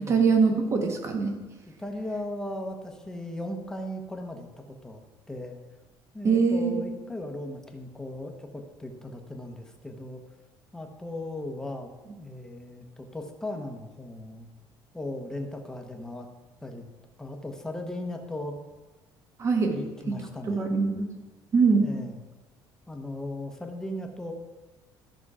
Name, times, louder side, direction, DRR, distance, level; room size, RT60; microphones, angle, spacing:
voice 1, 0.0-1.4 6.2-6.8 19.4-19.7 20.1-20.2 20.5-21.1 21.5-21.8, right 5 dB, 35° right, 4 dB, 1.5 m, -23 dB
voice 2, 1.8-5.0 5.3-5.6 6.1-10.2 10.7-11.9 12.2-14.5 14.9-16.3 16.6-16.8 17.2-18.6 19.6-20.7 21.8-22.2 22.9-24.3, left 1 dB, 5° left, 3 dB, 1.1 m, -37 dB
13.5 x 6.2 x 4.9 m, 1.2 s
cardioid pair, 150°, 9 cm